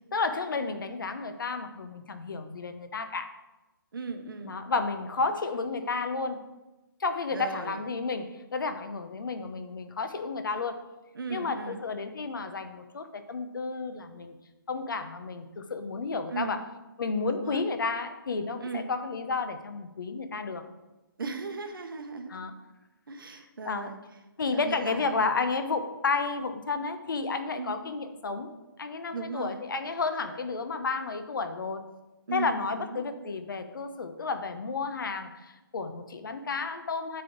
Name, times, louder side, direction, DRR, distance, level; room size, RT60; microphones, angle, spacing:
voice 1, 0.1-3.3 4.4-6.4 7.0-10.8 11.3-14.3 14.7-16.7 17.0-20.6 22.3-22.5 23.6-23.9 24.4-28.5 28.8-31.8 32.3-37.2, left 4 dB, 65° left, 8 dB, 0.8 m, -32 dB
voice 2, 3.9-4.6 7.3-7.8 11.1-11.8 16.3-16.7 17.3-17.6 18.6-18.9 21.2-22.3 23.1-24.0 24.5-25.1 27.6-27.7 29.1-29.6 32.3-33.0, right 4 dB, 70° right, 6 dB, 0.9 m, -37 dB
9.4 x 3.5 x 3.9 m, 1.1 s
hypercardioid pair, 165°, 12 cm